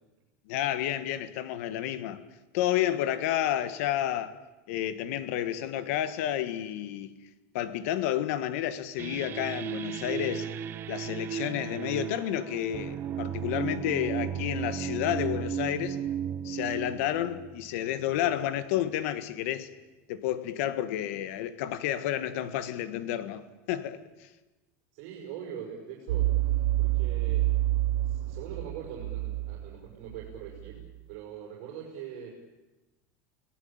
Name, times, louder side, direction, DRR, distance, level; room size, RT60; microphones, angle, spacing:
voice 1, 0.5-2.2 2.5-4.4 4.7-7.1 7.5-10.5 10.9-16.0 16.4-19.7 20.1-24.3, left 12 dB, 70° left, 1.7 m, -30 dB
sound 1, 9.0-18.3, right 9 dB, 30° right, 0.9 m, -35 dB
voice 2, 24.9-27.5 28.0-32.3, right 8 dB, 65° right, 6.0 m, -42 dB
sound 2, 26.1-30.9, right 15 dB, 85° right, 0.9 m, -28 dB
29.0 x 19.0 x 8.9 m
supercardioid pair, 160°, 8 cm